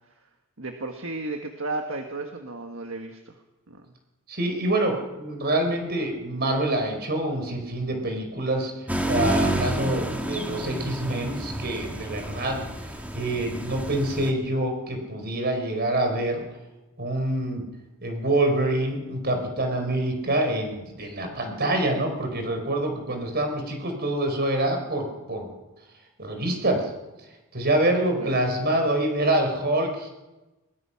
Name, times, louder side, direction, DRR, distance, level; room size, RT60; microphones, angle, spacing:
voice 1, 0.6-3.3 3.7-3.9 28.2-28.4, right 2 dB, 65° right, 4 dB, 1.6 m, -33 dB
voice 2, 4.3-8.7 9.1-16.4 17.0-17.6 18.0-25.5 26.2-26.9 27.5-30.1, right 1 dB, 45° right, 4 dB, 4.6 m, -26 dB
sound 1, 8.9-14.3, equal, 5° right, 1.9 m, -29 dB
22.0 x 20.5 x 5.8 m, 1.1 s
head